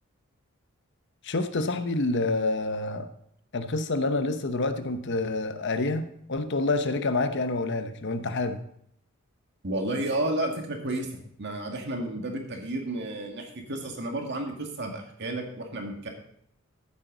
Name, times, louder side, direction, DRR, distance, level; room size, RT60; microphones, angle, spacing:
voice 1, 1.2-3.1 3.5-8.6, left 2 dB, 50° left, 9 dB, 0.8 m, -28 dB
voice 2, 9.6-11.1 11.4-16.1, right 1 dB, 50° right, 2 dB, 1.9 m, -31 dB
14.0 x 8.1 x 3.9 m, 0.70 s
head